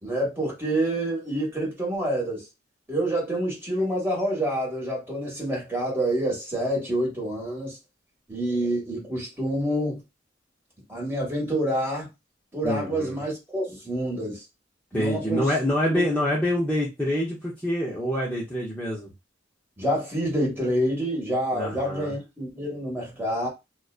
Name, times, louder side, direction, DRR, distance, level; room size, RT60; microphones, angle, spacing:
voice 1, 0.0-2.4 2.9-7.8 8.3-10.0 10.9-12.1 12.5-14.4 14.9-15.5 15.9-16.0 19.8-23.5, right 1 dB, 10° right, 1.3 m, -27 dB
voice 2, 12.6-13.2 14.9-19.1 21.5-22.1, left 1 dB, 10° left, 0.6 m, -26 dB
2.6 x 2.2 x 2.3 m
head